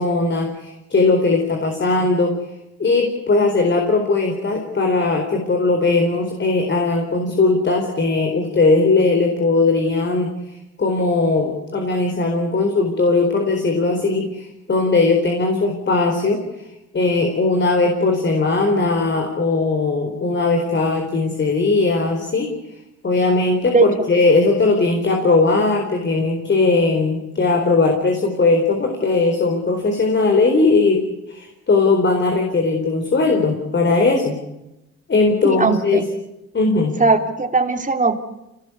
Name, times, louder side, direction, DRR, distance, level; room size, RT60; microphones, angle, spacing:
voice 1, 0.0-2.4 2.8-16.4 16.9-22.5 23.0-34.4 35.1-36.1 36.5-37.0, left 3 dB, 40° left, 4 dB, 4.3 m, -19 dB
voice 2, 23.7-24.1 35.4-36.1 37.0-38.2, right 3 dB, 25° right, 5 dB, 3.1 m, -18 dB
27.0 x 19.0 x 8.2 m, 0.93 s
cardioid pair, 90°, 30 cm